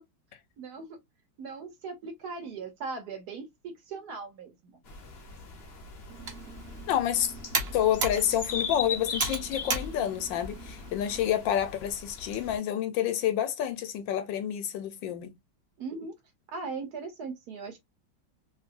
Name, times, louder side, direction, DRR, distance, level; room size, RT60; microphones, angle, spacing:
voice 1, 0.6-1.0 1.4-4.8 15.8-16.1 16.5-17.8, right 4 dB, 65° right, 1.1 m, -39 dB
sound 1, 4.8-12.6, left 5 dB, 50° left, 0.7 m, -40 dB
Computer keyboard, 6.1-11.2, right 3 dB, 45° right, 0.8 m, -36 dB
voice 2, 6.9-7.3 7.7-15.3, left 10 dB, 75° left, 1.3 m, -28 dB
3.2 x 2.7 x 2.4 m
omnidirectional pair, 2.1 m